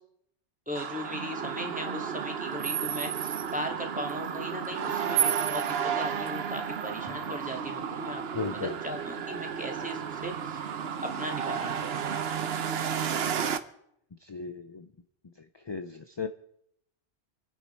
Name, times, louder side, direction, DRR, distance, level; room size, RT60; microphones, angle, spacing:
voice 1, 0.7-12.0, equal, 5° right, 2 dB, 2.4 m, -38 dB
sound 1, 0.8-13.6, right 8 dB, 65° right, 1.0 m, -32 dB
voice 2, 8.3-8.8 14.2-14.9 15.6-16.3, left 5 dB, 35° left, 8 dB, 0.5 m, -35 dB
27.0 x 10.0 x 4.5 m, 0.73 s
omnidirectional pair, 1.1 m